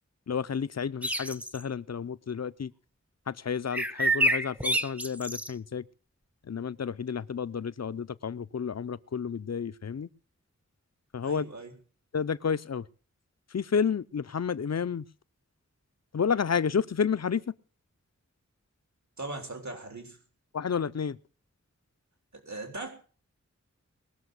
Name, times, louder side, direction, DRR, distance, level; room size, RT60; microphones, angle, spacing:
voice 1, 0.3-2.7 3.3-5.8 6.5-10.1 11.1-11.4 12.1-12.9 13.5-15.0 16.1-17.5 20.5-21.2, left 6 dB, 60° left, 0.7 m, -30 dB
sound 1, 1.0-1.6 3.7-5.5, right 1 dB, 5° right, 0.8 m, -27 dB
voice 2, 11.2-11.7 19.2-20.2 22.5-22.9, right 2 dB, 70° right, 4.0 m, -39 dB
21.0 x 6.9 x 8.1 m
wide cardioid pair, 70°, 29 cm